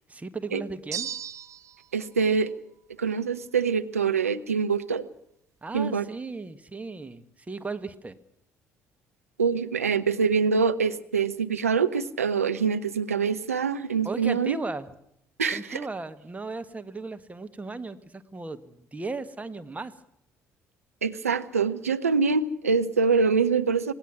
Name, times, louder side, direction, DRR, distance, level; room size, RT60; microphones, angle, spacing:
voice 1, 0.1-1.1 5.6-8.2 14.0-14.9 15.5-19.9, right 3 dB, 20° right, 10 dB, 1.6 m, -36 dB
sound 1, 0.9-1.9, right 8 dB, 45° right, 0.8 m, -35 dB
voice 2, 1.9-2.5 3.0-5.1 5.7-6.1 9.4-14.6 15.4-15.8 21.0-23.9, right 5 dB, 80° right, 9 dB, 0.8 m, -25 dB
26.5 x 18.5 x 6.0 m, 0.75 s
figure-of-eight pair, 50°, 8 cm